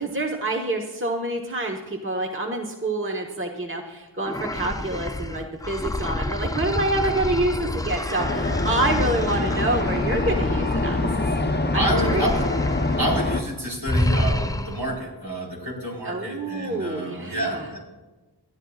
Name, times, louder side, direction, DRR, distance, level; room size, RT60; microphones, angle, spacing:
voice 1, 0.0-11.3 11.7-12.3 16.0-17.7, right 2 dB, 30° right, 1 dB, 1.2 m, -27 dB
sound 1, 4.2-11.4 11.8-13.1 13.3-13.5 13.9-15.0, left 1 dB, 10° left, 0.4 m, -29 dB
sound 2, 8.2-13.4, left 2 dB, 25° left, 0.8 m, -24 dB
voice 2, 11.7-12.5 13.0-17.8, right 1 dB, 70° right, -3 dB, 4.6 m, -29 dB
21.5 x 13.5 x 2.4 m, 1.2 s
wide cardioid pair, 50°, 42 cm